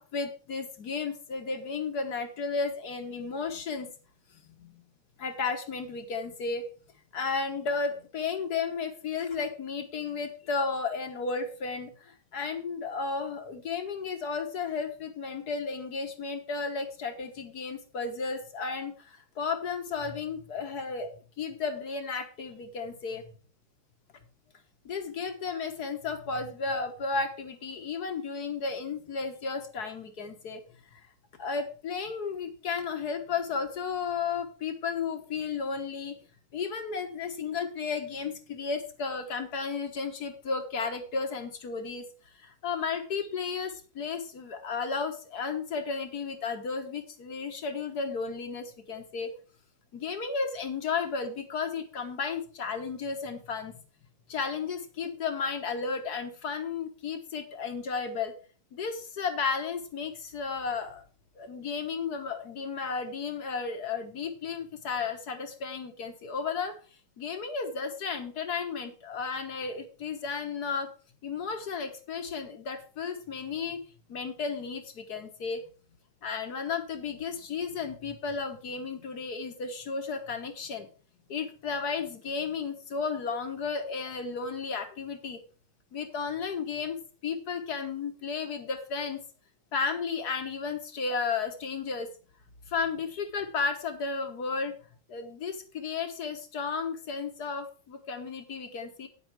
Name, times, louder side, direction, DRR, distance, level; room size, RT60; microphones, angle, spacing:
voice 1, 0.0-3.9 4.5-4.8 5.2-6.6 7.1-21.1 21.4-23.3 24.8-30.6 30.9-31.1 31.4-36.2 36.5-42.0 42.4-49.3 49.9-53.8 54.3-58.3 58.7-61.0 61.3-66.8 67.2-70.9 71.2-73.8 74.1-75.6 76.2-80.9 81.3-85.4 85.9-87.0 87.2-89.2 89.7-92.1 92.7-94.7 95.1-99.1, left 5 dB, 55° left, 7 dB, 1.6 m, -33 dB
9.9 x 8.3 x 4.7 m, 0.38 s
omnidirectional pair, 2.2 m